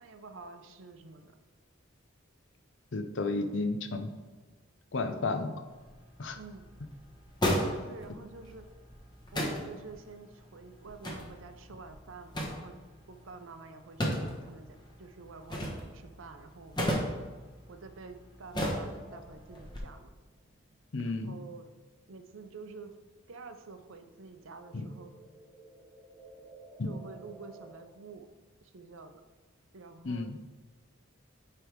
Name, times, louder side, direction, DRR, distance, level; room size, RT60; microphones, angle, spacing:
voice 1, 0.0-1.4 6.3-6.7 7.6-8.7 9.3-12.8 13.1-17.1 17.7-20.1 21.0-21.7 22.1-23.0 23.3-25.1 26.8-28.3 28.6-29.2 29.7-30.3, right 4 dB, 70° right, 8 dB, 0.6 m, -48 dB
voice 2, 2.9-4.1 4.9-5.6 6.2-6.4 20.9-21.4 24.7-24.9 26.8-26.9 30.0-30.4, left 3 dB, 60° left, 7 dB, 0.6 m, -32 dB
sound 1, 5.7-19.8, equal, 20° left, 1.1 m, -37 dB
sound 2, 18.8-22.9 23.2-27.8, right 2 dB, 20° right, 0.8 m, -55 dB
9.7 x 3.5 x 4.6 m, 1.3 s
head